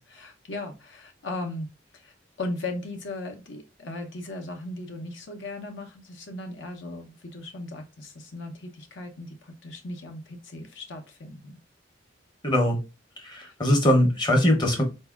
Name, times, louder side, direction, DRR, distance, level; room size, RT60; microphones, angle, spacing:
voice 1, 0.1-1.7 1.9-11.6 13.4-13.5, left 2 dB, 75° left, 5 dB, 0.7 m, -37 dB
voice 2, 12.4-12.8 13.2-14.8, left 1 dB, 25° left, 2 dB, 0.8 m, -21 dB
4.1 x 2.7 x 2.3 m, 0.28 s
head